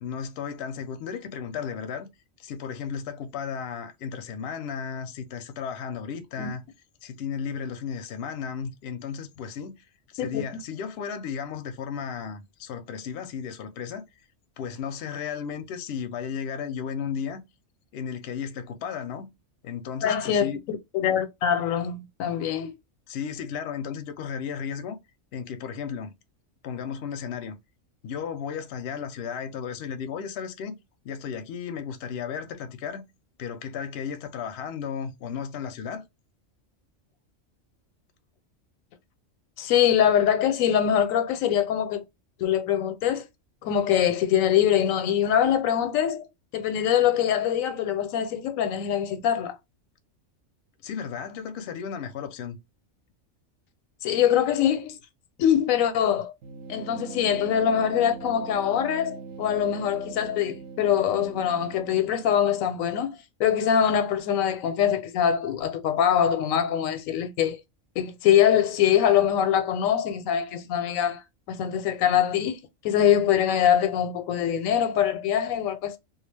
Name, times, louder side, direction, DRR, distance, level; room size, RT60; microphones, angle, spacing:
voice 1, 0.0-2.1 2.4-6.6 7.0-9.8 10.1-14.1 14.6-17.4 17.9-19.3 19.6-20.6 23.1-25.0 25.3-26.1 26.6-27.6 28.0-30.8 31.0-33.0 33.4-36.1 50.8-52.6, left 7 dB, 65° left, 0.7 m, -34 dB
voice 2, 20.0-22.7 39.6-42.0 42.4-43.2 43.6-46.3 46.5-49.6 54.0-55.0 55.4-56.3 56.7-67.6 68.0-71.2 71.5-76.0, left 9 dB, 85° left, 1.0 m, -23 dB
sound 1, 56.4-63.1, right 5 dB, 65° right, 0.9 m, -42 dB
2.3 x 2.3 x 3.2 m
omnidirectional pair, 1.4 m